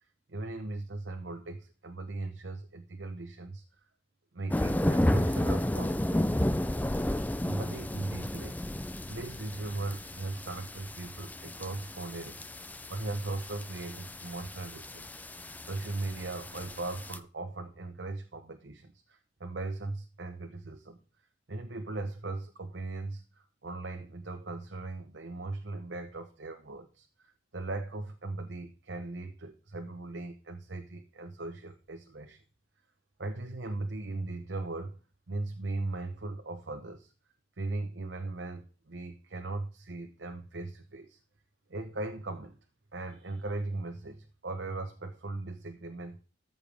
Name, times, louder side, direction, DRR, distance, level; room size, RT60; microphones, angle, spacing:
voice 1, 0.3-3.6 4.3-6.4 7.4-8.6 9.1-12.5 12.9-15.4 15.7-21.0 21.5-23.2 23.6-32.4 33.2-35.0 35.3-37.1 37.6-41.2 41.7-42.5 42.9-46.2, right 2 dB, 70° right, 5 dB, 0.9 m, -38 dB
sound 1, 4.5-17.2, left 1 dB, 10° left, 0.4 m, -33 dB
13.5 x 6.8 x 3.4 m, 0.34 s
head